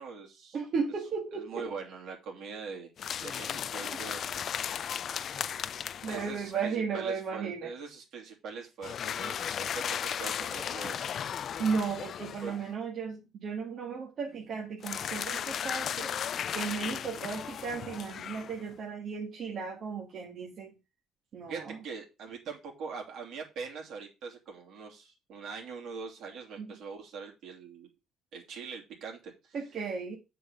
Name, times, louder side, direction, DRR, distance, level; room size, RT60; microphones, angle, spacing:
voice 1, 0.0-0.6 1.3-2.9 3.2-4.2 6.1-11.2 12.4-12.6 14.3-14.4 21.5-27.9 28.3-29.6, right 5 dB, 70° right, 3.0 m, -42 dB
voice 2, 0.5-1.7 5.4-5.6 6.0-7.7 11.6-16.1 16.5-20.7 21.3-21.8 26.6-26.7 29.5-30.2, right 5 dB, 50° right, 1.8 m, -35 dB
sound 1, 3.0-6.6 8.8-12.7 14.8-18.7, left 8 dB, 55° left, 0.3 m, -36 dB
7.5 x 4.1 x 6.7 m
cardioid pair, 105°, 0 cm